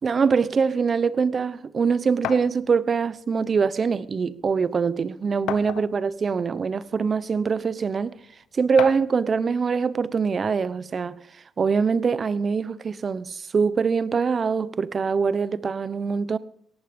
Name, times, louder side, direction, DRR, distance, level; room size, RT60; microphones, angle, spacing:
voice 1, 0.0-8.1 8.5-11.2 11.6-16.4, right 5 dB, 40° right, 0.9 m, -23 dB
sound 1, 2.2-2.5 3.7-3.8 4.2-4.3 5.5-6.1 7.0-7.1 8.8-9.2, left 11 dB, 85° left, 1.0 m, -31 dB
18.0 x 14.5 x 5.2 m
cardioid pair, 90°, 0 cm